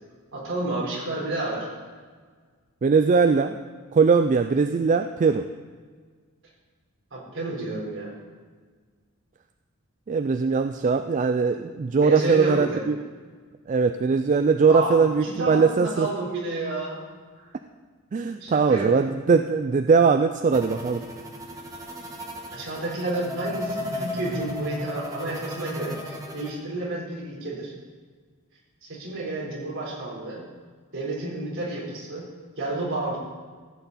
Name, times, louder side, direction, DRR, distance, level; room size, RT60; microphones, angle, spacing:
voice 1, 0.3-1.7 7.1-8.1 12.0-12.8 14.7-17.0 17.3-17.5 18.4-19.1 22.5-27.7 28.8-30.4 30.9-32.3 32.6-33.2, right 2 dB, 60° right, -5 dB, 4.0 m, -30 dB
voice 2, 2.8-3.6 3.9-5.5 10.1-13.0 13.7-16.1 18.1-21.0, right 5 dB, 35° right, 8 dB, 0.3 m, -20 dB
sound 1, 20.5-26.5, left 1 dB, 15° right, 1.3 m, -35 dB
15.0 x 8.1 x 4.1 m, 1.5 s
head